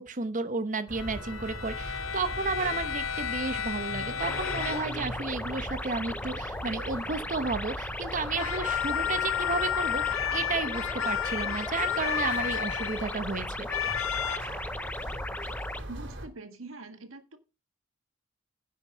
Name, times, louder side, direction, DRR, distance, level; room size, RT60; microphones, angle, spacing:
voice 1, 0.0-13.7, right 4 dB, 40° right, 1.0 m, -32 dB
sound 1, 0.9-16.3, right 1 dB, 65° right, 3.4 m, -40 dB
sound 2, 1.0-5.0 8.3-13.3 13.7-14.4, left 10 dB, 80° left, 0.7 m, -32 dB
sound 3, 4.2-15.8, left 2 dB, 10° left, 0.4 m, -37 dB
voice 2, 15.9-17.4, right 2 dB, 85° right, 1.9 m, -44 dB
11.0 x 6.6 x 5.6 m
head